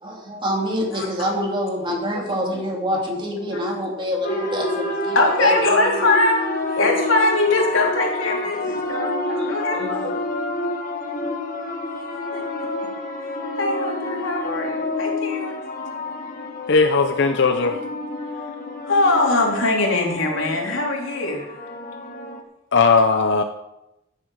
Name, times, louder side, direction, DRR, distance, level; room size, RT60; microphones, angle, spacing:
voice 1, 0.0-5.9 8.6-10.2, equal, 25° right, -1 dB, 3.3 m, -27 dB
sound 1, 4.2-22.4, left 2 dB, 45° left, 1.8 m, -29 dB
voice 2, 5.1-6.4 6.7-10.1 12.3-12.7 13.6-15.5 18.9-21.5, left 2 dB, 80° left, -1 dB, 3.2 m, -22 dB
voice 3, 16.7-17.8 22.7-23.4, left 4 dB, 65° left, 7 dB, 0.7 m, -17 dB
15.0 x 9.4 x 4.8 m, 0.90 s
head